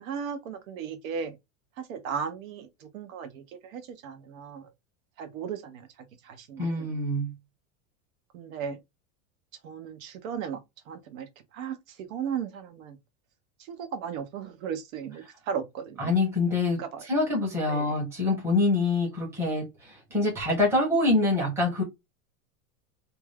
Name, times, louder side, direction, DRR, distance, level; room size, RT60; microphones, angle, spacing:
voice 1, 0.0-1.4 1.8-4.7 5.2-5.9 6.2-6.9 8.3-8.8 9.6-10.6 10.9-13.0 13.7-16.1 16.8-17.1 17.7-17.9, right 7 dB, 70° right, 0.8 m, -36 dB
voice 2, 6.6-7.3 16.0-21.8, left 2 dB, 5° right, 0.8 m, -25 dB
2.6 x 2.3 x 3.2 m
supercardioid pair, 175°, 43 cm